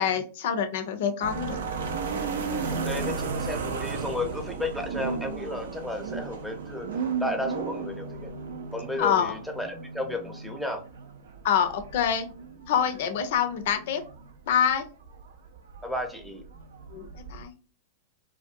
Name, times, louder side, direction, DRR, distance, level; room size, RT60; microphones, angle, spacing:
voice 1, 0.0-1.6 9.0-9.3 11.4-12.3 12.7-14.0 14.5-14.8 16.9-17.5, left 8 dB, 60° left, 8 dB, 0.5 m, -26 dB
sound 1, 1.2-17.5, right 4 dB, 70° right, 0.4 m, -35 dB
voice 2, 2.7-6.9 7.2-8.3 8.7-10.8 15.8-16.4, left 1 dB, ahead, 3 dB, 0.6 m, -33 dB
2.6 x 2.2 x 2.5 m, 0.36 s
figure-of-eight pair, 95°, 0 cm